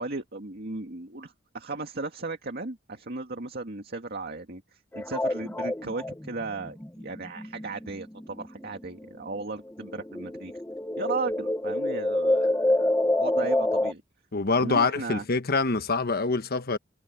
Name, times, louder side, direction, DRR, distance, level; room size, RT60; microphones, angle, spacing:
voice 1, 0.0-4.6 4.9-10.5 11.0-12.9 13.2-14.0 14.6-15.2, right 3 dB, 55° right, 2.1 m, -35 dB
sound 1, 4.9-9.0 9.4-13.9, left 1 dB, 10° left, 1.0 m, -27 dB
voice 2, 14.3-16.8, left 4 dB, 50° left, 1.2 m, -25 dB
head